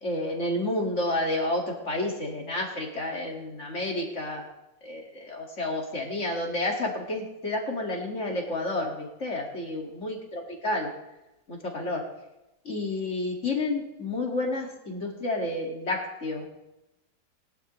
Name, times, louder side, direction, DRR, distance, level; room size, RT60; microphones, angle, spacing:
voice 1, 0.0-4.4 4.8-10.9 11.5-12.0 12.6-16.5, left 2 dB, 40° left, 0 dB, 2.2 m, -30 dB
21.0 x 11.0 x 3.1 m, 0.95 s
omnidirectional pair, 2.0 m